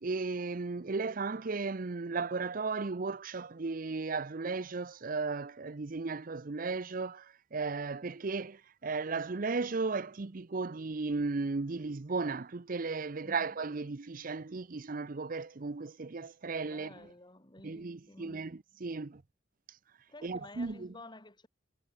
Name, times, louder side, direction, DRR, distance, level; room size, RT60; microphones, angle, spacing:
voice 1, 0.0-16.9 17.6-19.2 20.2-20.9, right 4 dB, 45° right, 0.6 m, -35 dB
voice 2, 13.2-13.6 16.6-18.5 20.1-21.5, left 2 dB, 25° left, 3.2 m, -52 dB
head